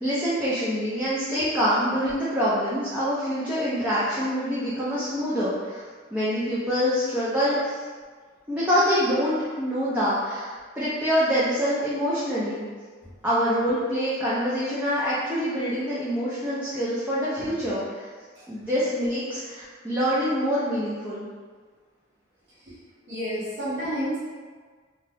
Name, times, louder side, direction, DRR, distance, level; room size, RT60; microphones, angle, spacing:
voice 1, 0.0-5.8 6.1-7.8 8.5-10.5 10.8-12.7 13.2-17.8 18.5-21.3, equal, 10° right, -10 dB, 0.5 m, -25 dB
voice 2, 23.1-24.2, equal, 65° right, -11 dB, 1.0 m, -30 dB
2.8 x 2.2 x 3.3 m, 1.5 s
head